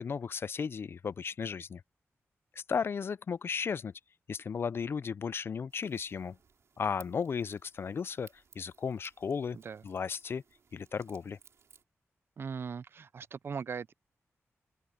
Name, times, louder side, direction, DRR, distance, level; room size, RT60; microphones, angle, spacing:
voice 1, 0.0-1.8 2.7-3.9 4.3-6.4 6.8-8.3 8.6-9.6 9.8-10.4 10.7-11.4, left 6 dB, 50° left, 0.4 m, -34 dB
sound 1, 5.7-11.8, right 6 dB, 70° right, 3.7 m, -62 dB
voice 2, 12.4-13.9, right 6 dB, 50° right, 0.3 m, -39 dB
open air
wide cardioid pair, 160°, 5 cm